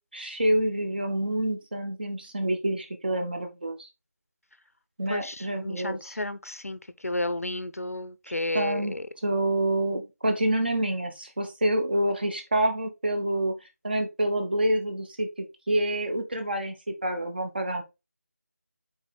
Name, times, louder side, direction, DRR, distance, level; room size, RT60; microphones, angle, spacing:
voice 1, 0.1-3.9 5.0-6.1 8.5-8.9 9.2-13.5 13.8-17.8, right 1 dB, 35° right, 1.4 m, -27 dB
voice 2, 5.1-9.1, left 1 dB, 60° left, 0.7 m, -32 dB
6.3 x 4.5 x 3.8 m
figure-of-eight pair, 165°, 9 cm